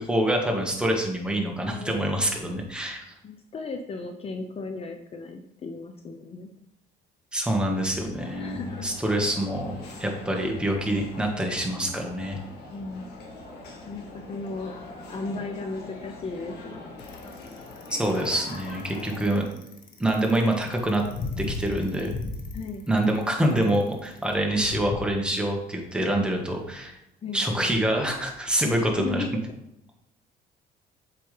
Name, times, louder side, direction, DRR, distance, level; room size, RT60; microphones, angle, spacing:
voice 1, 0.0-3.0 7.3-12.4 17.9-19.4 20.0-21.0 21.4-22.1 22.9-27.0 27.3-29.2, right 1 dB, 5° right, 1 dB, 1.5 m, -26 dB
voice 2, 1.6-2.1 3.2-6.5 8.4-8.9 12.7-13.1 13.8-16.9 22.5-22.9 27.2-27.8 28.7-29.4, left 3 dB, 35° left, 5 dB, 0.7 m, -36 dB
sound 1, 8.2-19.2, left 2 dB, 75° left, 1.6 m, -43 dB
Bicycle, 17.0-25.1, left 3 dB, 55° left, 1.4 m, -36 dB
7.8 x 5.0 x 3.4 m, 0.84 s
cardioid pair, 110°, 17 cm